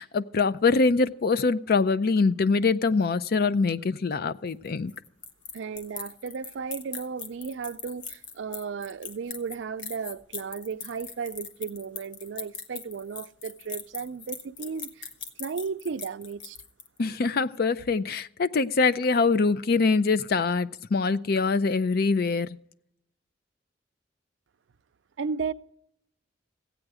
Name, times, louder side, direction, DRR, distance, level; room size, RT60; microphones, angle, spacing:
voice 1, 0.0-4.9 17.0-22.6, left 4 dB, 55° left, 0.5 m, -24 dB
sound 1, 4.5-17.1, left 6 dB, 80° left, 1.1 m, -40 dB
voice 2, 5.5-15.1 15.4-16.6 25.2-25.5, right 5 dB, 80° right, 0.4 m, -34 dB
15.5 x 8.9 x 4.8 m
head